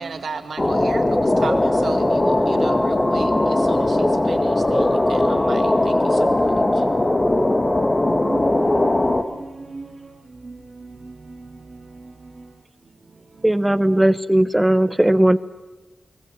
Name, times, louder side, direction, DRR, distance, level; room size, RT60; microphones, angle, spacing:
voice 1, 0.0-6.8, right 5 dB, 75° right, 2.2 m, -35 dB
sound 1, 0.6-9.2, left 1 dB, 30° left, 2.0 m, -19 dB
voice 2, 8.1-9.9 10.4-11.1 11.4-11.5, right 3 dB, 55° right, 2.4 m, -35 dB
voice 3, 13.4-15.4, right 1 dB, 15° right, 1.0 m, -17 dB
29.5 x 19.5 x 7.8 m
cardioid pair, 45°, 0 cm